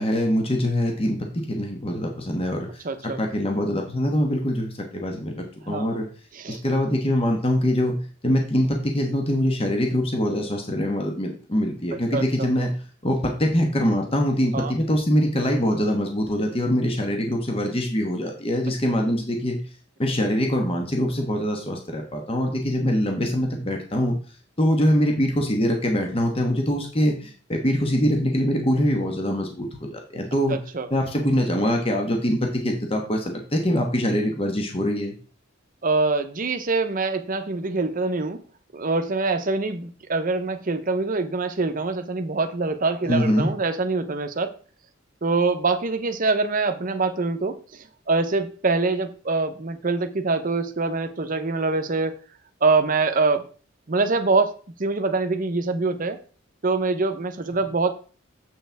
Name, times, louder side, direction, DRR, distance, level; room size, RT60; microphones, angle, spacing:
voice 1, 0.0-6.1 6.5-8.0 8.2-12.7 13.0-19.6 20.0-24.2 24.6-30.6 30.9-35.2 43.1-43.5, equal, 30° left, 2 dB, 1.3 m, -23 dB
voice 2, 2.8-3.2 5.7-5.9 6.3-6.6 12.1-12.5 14.5-14.7 30.5-30.9 35.8-38.4 38.7-44.5 45.2-52.2 52.6-53.5 53.9-56.2 56.6-57.9, right 3 dB, 45° right, 7 dB, 0.8 m, -24 dB
7.3 x 6.6 x 3.5 m, 0.39 s
head